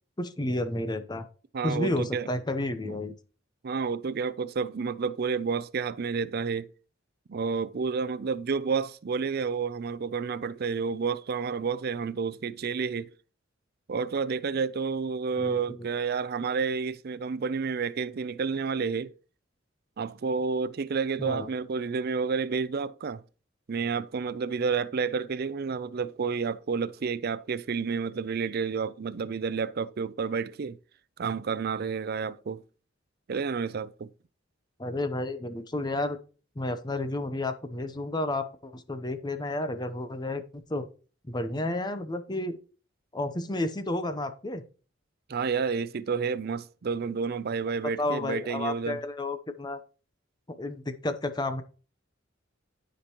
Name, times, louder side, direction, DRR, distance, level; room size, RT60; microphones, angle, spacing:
voice 1, 0.2-1.3 1.6-3.1 15.4-15.9 21.2-21.5 34.8-36.2 36.6-40.9 41.3-42.6 43.1-44.6 48.0-49.8 50.5-51.6, left 2 dB, 20° left, 0.8 m, -31 dB
voice 2, 1.5-2.3 2.8-2.9 3.6-6.7 7.3-13.1 13.9-19.1 20.0-23.2 23.7-30.8 31.2-32.6 33.3-34.1 45.3-49.0, right 5 dB, 50° right, 0.4 m, -30 dB
14.0 x 5.2 x 3.0 m
head